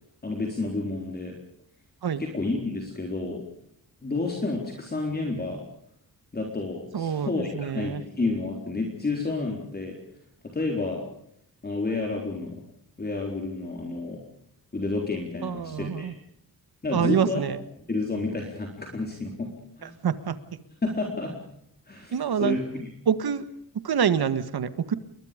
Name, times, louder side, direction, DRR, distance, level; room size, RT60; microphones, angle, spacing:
voice 1, 0.2-1.4 2.2-3.4 4.0-5.6 6.3-10.0 10.5-11.0 11.6-12.6 13.0-14.2 14.7-16.1 16.8-17.4 17.9-19.5 19.8-19.9 20.8-21.3 21.9-22.7, left 3 dB, 25° left, 1 dB, 4.0 m, -30 dB
voice 2, 6.9-8.0 15.4-16.1 16.9-17.6 19.8-20.4 22.1-22.6 23.1-23.5 23.7-24.9, right 8 dB, 70° right, 12 dB, 1.9 m, -26 dB
29.5 x 22.5 x 5.2 m, 0.69 s
wide cardioid pair, 170°, 38 cm